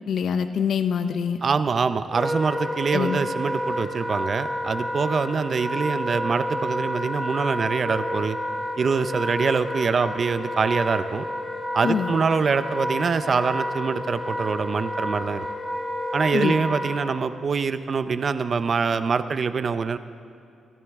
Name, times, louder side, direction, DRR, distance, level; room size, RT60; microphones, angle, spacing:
voice 1, 0.1-1.4 2.9-3.2 11.8-12.1 16.3-16.6, left 7 dB, 60° left, 9 dB, 0.6 m, -24 dB
voice 2, 1.4-8.4 8.8-11.3 11.7-15.5 16.1-20.0, right 5 dB, 40° right, 12 dB, 0.5 m, -24 dB
Wind instrument woodwind instrument, 2.1-17.1, left 1 dB, 5° left, 2.1 m, -30 dB
21.5 x 14.5 x 3.6 m, 2.6 s
wide cardioid pair, 155°, 0 cm